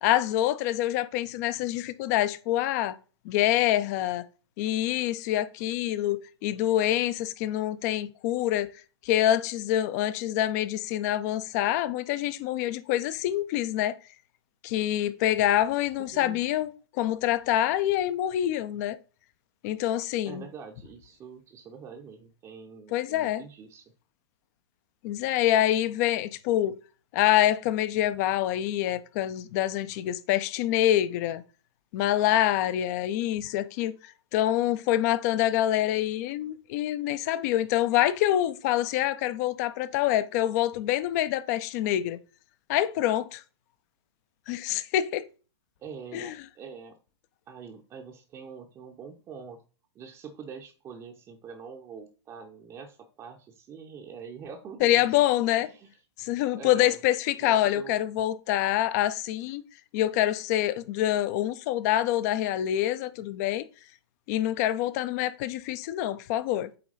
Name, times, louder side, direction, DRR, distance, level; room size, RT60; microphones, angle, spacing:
voice 1, 0.0-3.0 3.2-4.2 4.6-8.7 9.0-14.0 14.6-19.0 19.6-20.4 22.9-23.4 25.0-26.8 27.1-31.4 31.9-33.9 34.3-42.2 42.7-43.4 44.5-45.2 46.1-46.3 54.8-55.7 56.2-59.6 59.9-63.6 64.3-66.7, left 13 dB, 35° left, 0.5 m, -26 dB
voice 2, 16.1-16.4 20.2-24.0 45.8-47.0 47.5-49.6 49.9-55.2 55.6-55.9 56.4-57.0 57.4-58.0, right 6 dB, 20° right, 0.7 m, -44 dB
8.5 x 3.1 x 3.9 m
figure-of-eight pair, 110°, 14 cm